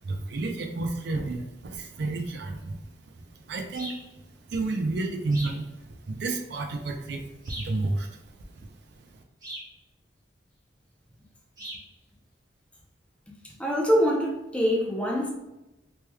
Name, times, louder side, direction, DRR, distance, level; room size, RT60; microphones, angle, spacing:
voice 1, 0.0-4.0 4.5-8.2 8.6-8.7 9.1-9.2, right 2 dB, 65° right, 0.5 m, -31 dB
sound 1, 3.7-4.1 5.3-5.6 7.4-7.8 9.4-9.7 11.6-11.9, right 1 dB, 25° right, 1.1 m, -40 dB
voice 2, 13.4-15.3, equal, 5° left, 0.6 m, -24 dB
3.3 x 3.1 x 2.2 m
head